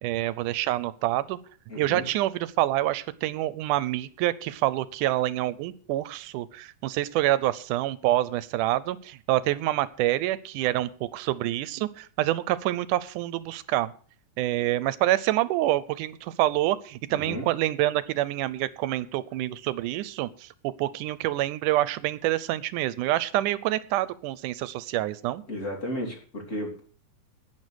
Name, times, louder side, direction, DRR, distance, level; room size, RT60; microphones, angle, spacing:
voice 1, 0.0-1.4 1.8-13.9 14.4-25.4, right 15 dB, 90° right, 17 dB, 2.2 m, -27 dB
voice 2, 1.7-2.0 17.1-17.5 25.5-26.9, equal, 25° left, 1 dB, 3.3 m, -34 dB
11.0 x 9.3 x 6.3 m, 0.42 s
omnidirectional pair, 3.5 m